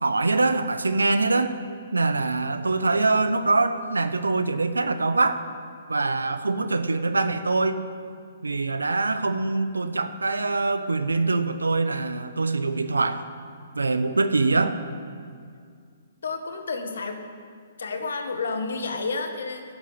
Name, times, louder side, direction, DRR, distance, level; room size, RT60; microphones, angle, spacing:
voice 1, 0.0-1.6 1.9-5.4 5.9-7.8 8.4-13.2 13.8-14.8, right 3 dB, 90° right, 11 dB, 0.8 m, -24 dB
voice 2, 16.2-17.3 17.8-19.6, left 4 dB, 75° left, 6 dB, 1.5 m, -30 dB
12.5 x 7.4 x 8.8 m, 2.2 s
hypercardioid pair, 130°, 0 cm